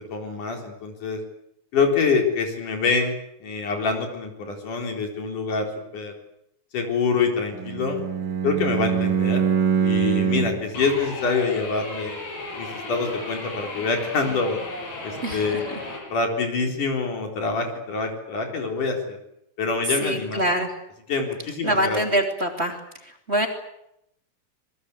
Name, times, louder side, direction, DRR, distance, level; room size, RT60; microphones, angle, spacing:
voice 1, 0.1-1.2 1.7-3.2 3.4-5.7 5.9-6.1 6.7-8.0 8.4-9.5 9.8-12.2 12.6-14.6 15.0-15.7 16.1-19.2 19.6-20.4 21.1-22.0, left 4 dB, 85° left, 3 dB, 5.6 m, -25 dB
Bowed string instrument, 7.5-10.7, right 7 dB, 35° right, 3.3 m, -23 dB
sound 1, 10.7-16.0, left 2 dB, 65° left, 9.0 m, -35 dB
voice 2, 20.0-20.7 21.6-22.8 23.3-23.5, equal, 20° right, 3 dB, 3.1 m, -23 dB
27.0 x 22.0 x 8.4 m, 0.78 s
omnidirectional pair, 3.5 m